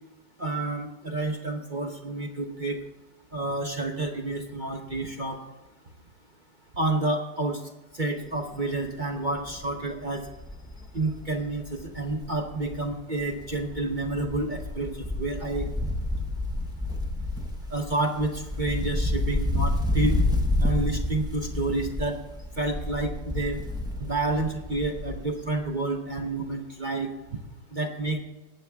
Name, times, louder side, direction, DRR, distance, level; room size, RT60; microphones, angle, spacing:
voice 1, 0.4-2.8 3.3-5.4 6.8-7.6 7.9-10.3 10.9-15.7 17.7-20.2 20.6-22.2 22.6-23.6 24.0-27.4 27.7-28.2, right 2 dB, 35° right, 2 dB, 0.9 m, -29 dB
Wind, 8.3-8.6 9.0-9.1 9.4-12.9 13.2-25.4 25.6-25.7, left 1 dB, 5° right, 0.9 m, -30 dB
19.0 x 7.4 x 3.5 m, 1.1 s
omnidirectional pair, 1.8 m